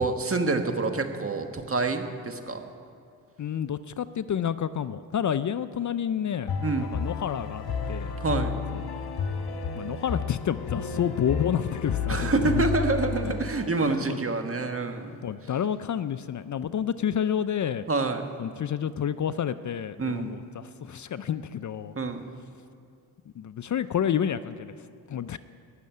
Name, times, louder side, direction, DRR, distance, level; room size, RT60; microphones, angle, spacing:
voice 1, 0.0-2.6 6.6-6.9 8.2-8.6 12.1-15.3 17.9-18.3 20.0-20.3 21.9-22.3, right 3 dB, 35° right, 6 dB, 1.5 m, -27 dB
voice 2, 3.4-6.5 6.9-8.1 8.7-8.8 9.8-12.5 13.8-14.2 15.2-17.8 18.4-21.9 23.4-24.7 25.1-25.4, left 9 dB, 50° left, 13 dB, 0.5 m, -29 dB
sound 1, 6.5-13.7, left 5 dB, 70° left, 1.7 m, -31 dB
18.0 x 6.6 x 9.5 m, 2.5 s
cardioid pair, 65°, 40 cm